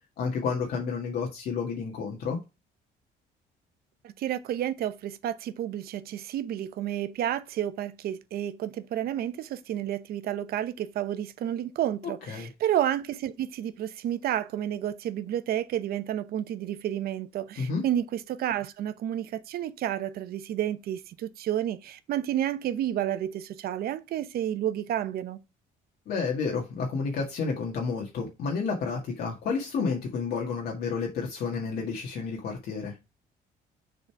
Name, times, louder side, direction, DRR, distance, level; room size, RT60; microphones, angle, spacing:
voice 1, 0.2-2.4 12.3-12.5 17.6-17.8 26.1-32.9, left 5 dB, 65° left, 1.9 m, -30 dB
voice 2, 4.0-25.4, right 11 dB, 65° right, 0.8 m, -31 dB
6.7 x 4.1 x 4.7 m
cardioid pair, 110°, 17 cm